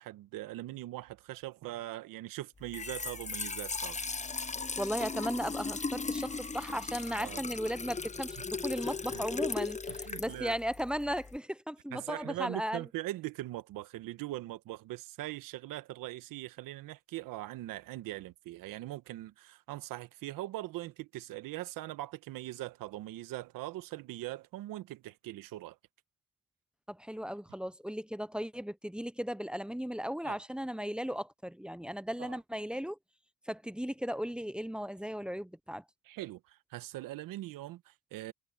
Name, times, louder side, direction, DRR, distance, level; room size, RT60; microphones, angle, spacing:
voice 1, 0.0-4.0 7.2-7.4 8.4-8.5 9.1-9.2 9.9-10.6 11.9-25.8 30.2-30.4 32.2-32.4 36.1-38.3, right 16 dB, 80° right, 1.4 m, -41 dB
Trickle dribble / Fill (with liquid), 2.6-11.4, left 4 dB, 20° left, 1.0 m, -37 dB
voice 2, 4.8-12.8 26.9-33.0 33.5-35.8, equal, 5° right, 0.8 m, -36 dB
supercardioid pair, 60°, 33 cm